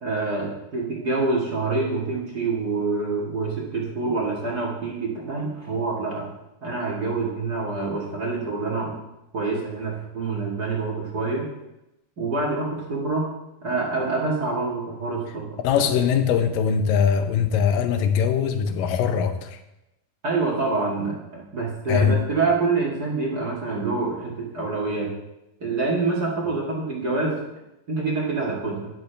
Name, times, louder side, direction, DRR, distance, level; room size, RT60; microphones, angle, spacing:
voice 1, 0.0-6.2 6.6-8.9 9.3-11.4 12.2-13.3 13.6-15.5 20.2-25.1 25.6-27.4 27.9-28.9, right 3 dB, 40° right, -3 dB, 1.5 m, -26 dB
voice 2, 15.6-19.6 21.9-22.2, left 7 dB, 75° left, 8 dB, 2.3 m, -21 dB
13.5 x 10.5 x 3.4 m, 0.92 s
omnidirectional pair, 4.4 m